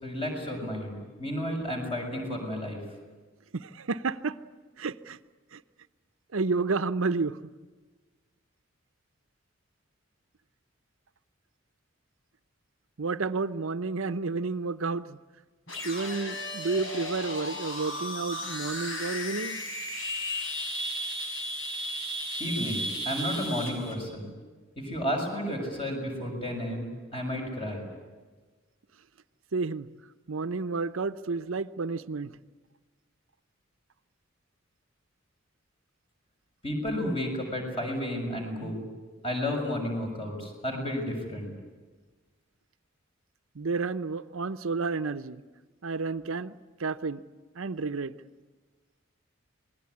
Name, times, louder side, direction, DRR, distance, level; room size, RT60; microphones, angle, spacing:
voice 1, 0.0-2.8 22.4-24.3 24.8-27.8 36.6-38.9 39.2-41.5, equal, 25° left, 2 dB, 6.7 m, -32 dB
voice 2, 3.5-4.4 4.8-5.2 5.5-5.6 6.3-7.4 13.0-15.2 15.8-19.6 29.5-29.9 30.3-32.4 43.5-45.4 45.8-47.2 47.5-48.1, right 4 dB, 85° right, 12 dB, 0.8 m, -31 dB
sound 1, 15.7-23.9, left 1 dB, 75° left, 6.2 m, -34 dB
27.0 x 20.5 x 9.7 m, 1.3 s
head